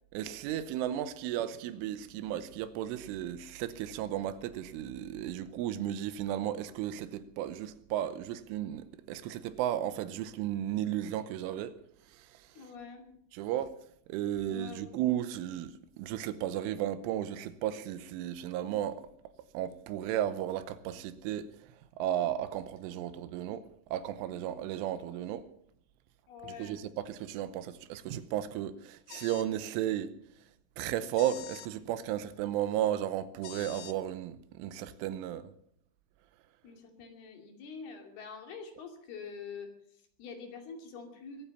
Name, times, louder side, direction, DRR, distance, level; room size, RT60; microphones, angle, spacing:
voice 1, 0.1-11.8 12.2-12.3 13.3-13.8 14.1-19.1 19.5-21.5 22.0-25.5 26.4-30.1 30.8-35.5, right 11 dB, 85° right, 3.3 m, -34 dB
voice 2, 12.6-13.1 14.5-15.0 26.3-26.8 36.6-41.4, left 5 dB, 60° left, 4.2 m, -46 dB
sound 1, 29.1-29.5 31.1-31.7 33.4-34.0, left 13 dB, 75° left, 2.4 m, -46 dB
23.5 x 8.6 x 7.0 m
omnidirectional pair, 5.5 m